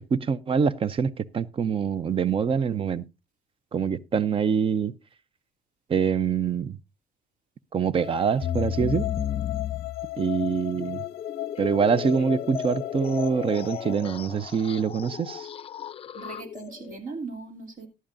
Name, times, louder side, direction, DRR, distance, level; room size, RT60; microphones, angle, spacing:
voice 1, 0.1-3.0 3.7-4.9 5.9-6.8 7.7-9.1 10.2-11.0 11.6-15.5, right 6 dB, 30° right, 0.6 m, -25 dB
sound 1, 8.0-13.9, left 19 dB, 85° left, 0.5 m, -37 dB
sound 2, 8.4-17.0, left 9 dB, 35° left, 0.5 m, -34 dB
voice 2, 16.1-17.9, right 4 dB, 50° right, 2.8 m, -38 dB
14.5 x 11.0 x 2.6 m
cardioid pair, 110°, 17 cm